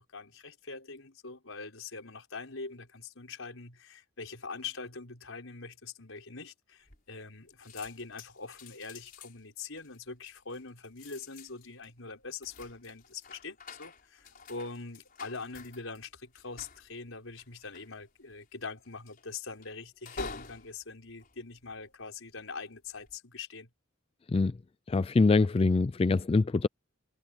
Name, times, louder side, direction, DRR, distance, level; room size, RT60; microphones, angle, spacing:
voice 1, 0.0-23.7, left 4 dB, 90° left, 4.9 m, -43 dB
sound 1, 6.9-7.4 7.6-22.2 22.8-23.2, left 4 dB, 45° left, 5.1 m, -50 dB
voice 2, 24.9-26.7, left 3 dB, 30° left, 0.3 m, -24 dB
head